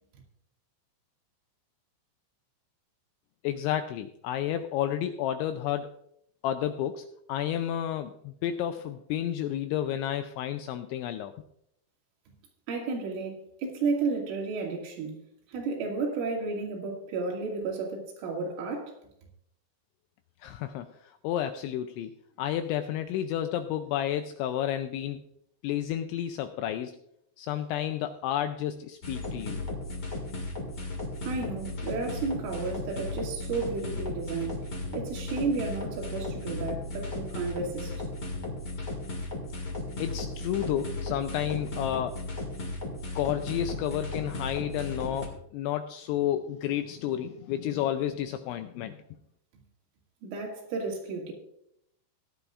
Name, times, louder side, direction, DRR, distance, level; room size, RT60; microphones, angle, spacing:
voice 1, 3.4-5.9 6.4-11.3 20.4-20.9 21.2-22.1 22.4-25.2 25.6-27.0 27.4-29.6 40.0-42.2 43.2-49.0, left 11 dB, 85° left, 2.7 m, -31 dB
voice 2, 12.7-15.2 15.5-19.0 31.2-34.7 34.9-38.0 50.2-51.3, right 4 dB, 75° right, 4.7 m, -32 dB
sound 1, 29.0-45.3, left 2 dB, 45° left, 1.3 m, -35 dB
17.5 x 11.0 x 2.5 m
omnidirectional pair, 5.8 m